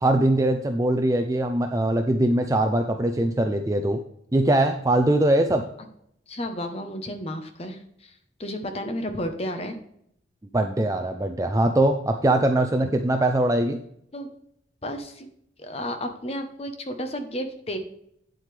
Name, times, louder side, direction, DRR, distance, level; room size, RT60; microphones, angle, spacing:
voice 1, 0.0-4.0 4.3-5.6 10.5-13.8, right 1 dB, 20° right, 5 dB, 0.5 m, -22 dB
voice 2, 6.3-8.1 8.4-9.8 14.1-14.3 14.8-15.3 15.6-17.8, equal, 35° left, 6 dB, 1.0 m, -32 dB
9.0 x 7.7 x 3.3 m, 0.71 s
head